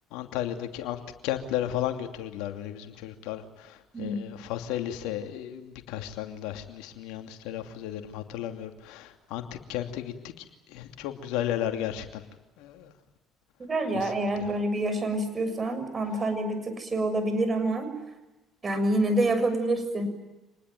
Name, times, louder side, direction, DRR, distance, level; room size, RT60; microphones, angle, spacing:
voice 1, 0.1-9.4 9.7-10.3 10.7-12.2 12.6-12.9 13.9-14.2, left 11 dB, 75° left, 6 dB, 2.7 m, -34 dB
voice 2, 3.9-4.3 13.6-17.9 18.6-20.1, right 1 dB, 35° right, 9 dB, 6.9 m, -27 dB
27.0 x 20.0 x 9.2 m, 1.1 s
hypercardioid pair, 60°, 0 cm